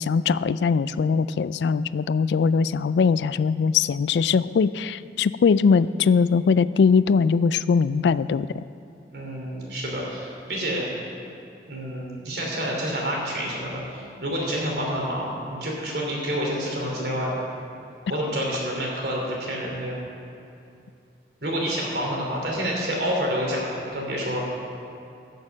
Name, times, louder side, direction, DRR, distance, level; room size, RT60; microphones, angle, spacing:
voice 1, 0.0-8.5, left 5 dB, 80° left, 16 dB, 0.3 m, -21 dB
voice 2, 9.1-10.9 11.7-17.4 18.1-20.0 21.4-24.4, equal, 70° right, -2 dB, 3.1 m, -28 dB
14.5 x 6.6 x 7.3 m, 2.6 s
head